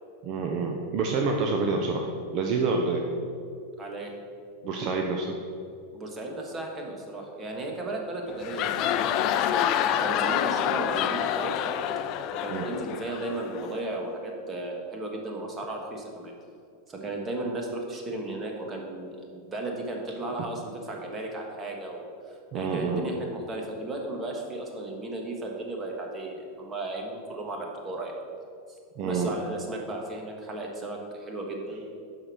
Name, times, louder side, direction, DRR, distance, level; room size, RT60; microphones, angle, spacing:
voice 1, 0.2-2.1 2.3-3.1 4.6-5.4 12.5-12.7 22.5-23.0 29.0-29.3, right 4 dB, 45° right, 2 dB, 0.8 m, -27 dB
voice 2, 3.8-4.1 5.9-11.8 12.4-16.3 16.9-28.1 29.0-32.0, right 2 dB, 20° right, 1 dB, 1.5 m, -35 dB
sound 1, 8.3-13.9, left 10 dB, 45° left, 0.4 m, -27 dB
6.4 x 5.9 x 6.3 m, 2.4 s
supercardioid pair, 130°, 0 cm